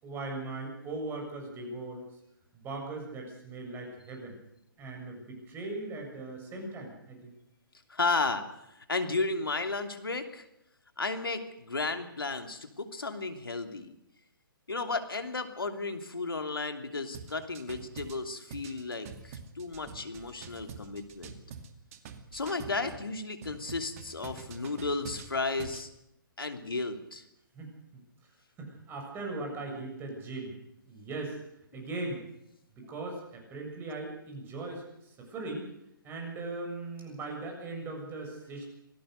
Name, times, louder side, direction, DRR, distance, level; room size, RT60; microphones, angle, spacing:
voice 1, 0.0-2.0 2.5-4.4 4.8-7.3 27.5-27.7 28.6-30.5 30.9-31.4 31.7-32.2 32.8-35.7 36.0-38.6, right 2 dB, 20° right, 1 dB, 7.2 m, -39 dB
voice 2, 7.9-8.4 8.9-10.4 11.0-13.9 14.7-21.3 22.3-25.9 26.4-27.2, left 3 dB, 80° left, 7 dB, 2.9 m, -33 dB
sound 1, 17.1-23.0 23.4-25.9, right 6 dB, 40° right, 2.4 m, -46 dB
26.0 x 18.0 x 6.7 m, 0.83 s
figure-of-eight pair, 130°, 12 cm